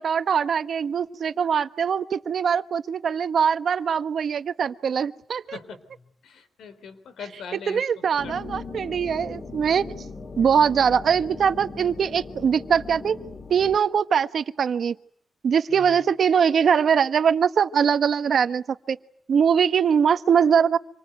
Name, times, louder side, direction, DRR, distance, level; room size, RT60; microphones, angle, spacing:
voice 1, 0.0-5.6 7.5-10.0 10.4-13.2 13.5-14.9 15.4-19.0 19.3-20.8, right 7 dB, 70° right, 11 dB, 1.3 m, -22 dB
voice 2, 5.5-5.8 6.2-8.4 15.7-16.0, left 6 dB, 90° left, 12 dB, 4.0 m, -41 dB
sound 1, 8.2-13.8, left 4 dB, 35° left, 2.5 m, -39 dB
27.0 x 25.0 x 8.1 m, 0.66 s
cardioid pair, 85°, 0 cm